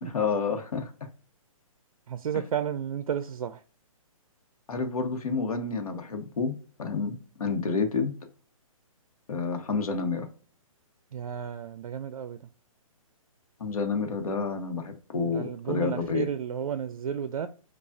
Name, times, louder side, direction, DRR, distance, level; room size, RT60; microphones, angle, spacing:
voice 1, 0.0-0.9 4.7-6.5 6.8-8.1 9.3-10.3 13.6-16.3, left 4 dB, 85° left, 1.1 m, -29 dB
voice 2, 2.1-3.6 11.1-12.4 15.3-17.5, right 8 dB, 75° right, 0.4 m, -32 dB
4.7 x 2.3 x 2.6 m
hypercardioid pair, 175°, 18 cm